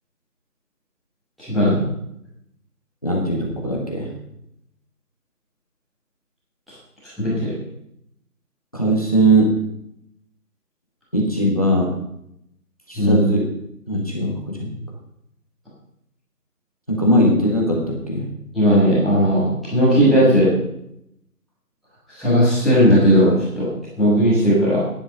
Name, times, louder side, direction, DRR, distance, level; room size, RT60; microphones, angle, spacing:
voice 1, 1.4-1.8 7.2-7.5 12.9-13.2 18.5-20.5 22.1-23.7 24.0-24.8, equal, ahead, -19 dB, 1.7 m, -16 dB
voice 2, 3.0-4.1 8.7-9.5 11.1-11.9 12.9-13.5 13.9-14.8 16.9-18.3, right 1 dB, 25° left, -1 dB, 1.5 m, -19 dB
11.5 x 10.0 x 5.5 m, 0.78 s
figure-of-eight pair, 180°, 46 cm